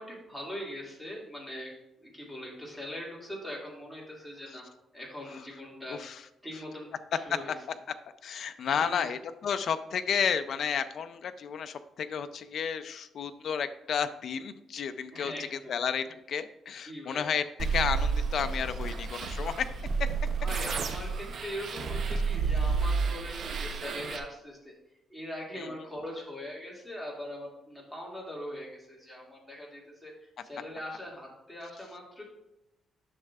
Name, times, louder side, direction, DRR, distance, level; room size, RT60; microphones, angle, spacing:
voice 1, 0.0-1.7 2.0-4.7 4.9-6.0 6.4-7.6 8.7-9.1 15.1-15.7 16.9-17.3 20.4-24.7 25.1-32.2, equal, ahead, -4 dB, 2.2 m, -41 dB
voice 2, 5.9-6.2 8.2-17.4 17.7-19.7 25.6-25.7, left 7 dB, 55° left, 9 dB, 0.4 m, -32 dB
sound 1, 17.6-24.2, right 5 dB, 55° right, 0.7 m, -31 dB
11.0 x 6.4 x 2.4 m, 0.92 s
cardioid pair, 145°, 0 cm